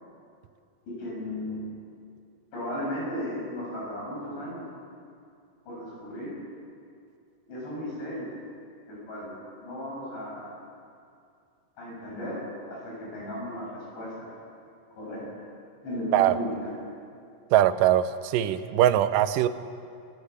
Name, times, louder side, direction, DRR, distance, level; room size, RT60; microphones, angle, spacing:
voice 1, 0.8-1.6 2.5-4.6 5.7-6.3 7.5-8.3 8.9-10.6 11.8-12.4 12.7-14.3 14.9-15.5 15.8-16.7, left 1 dB, 90° left, -4 dB, 10.0 m, -35 dB
voice 2, 17.5-19.5, right 12 dB, 90° right, 9 dB, 1.8 m, -21 dB
29.0 x 15.0 x 8.3 m, 2.4 s
omnidirectional pair, 4.9 m